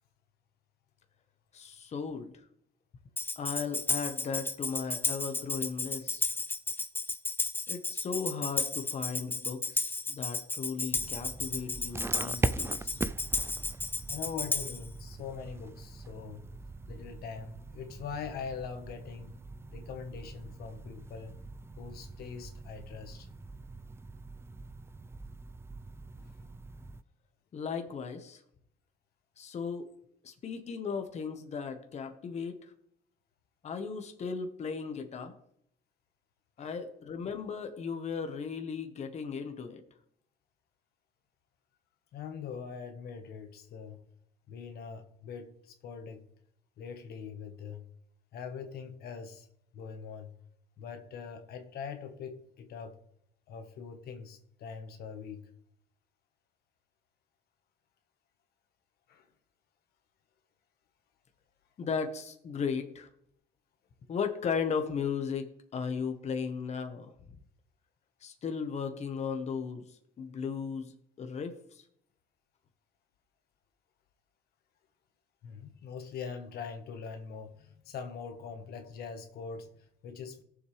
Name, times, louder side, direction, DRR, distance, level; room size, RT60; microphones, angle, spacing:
voice 1, 1.5-2.4 3.4-6.2 7.7-13.0 27.5-28.4 29.4-29.9 30.2-32.7 33.6-35.4 36.6-39.8 61.8-63.1 64.1-67.1 68.2-71.8, left 6 dB, 40° left, 1.2 m, -36 dB
Tambourine, 3.2-14.9, left 3 dB, 10° left, 0.7 m, -33 dB
sound 1, 10.9-27.0, right 3 dB, 15° right, 0.4 m, -41 dB
voice 2, 14.1-16.4 16.9-19.3 19.7-21.4 21.8-23.3 26.2-26.3 36.6-36.7 42.1-44.0 44.5-46.2 46.8-47.8 48.3-49.5 49.7-50.3 50.8-53.0 53.5-55.4 59.1-59.3 75.4-80.4, left 6 dB, 70° left, 1.4 m, -42 dB
17.5 x 7.4 x 3.4 m
cardioid pair, 110°, 17 cm